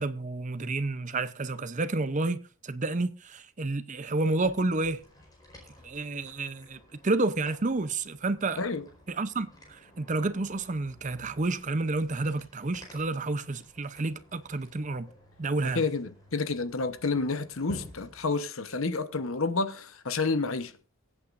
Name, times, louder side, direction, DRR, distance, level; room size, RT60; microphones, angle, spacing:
voice 1, 0.0-2.4 2.6-5.0 5.8-8.6 9.1-15.1 15.4-15.8, right 2 dB, 35° right, 0.6 m, -30 dB
sound 1, 4.1-18.3, left 1 dB, 20° left, 4.5 m, -53 dB
voice 2, 15.7-20.7, left 3 dB, 70° left, 1.0 m, -29 dB
23.0 x 8.6 x 2.6 m
head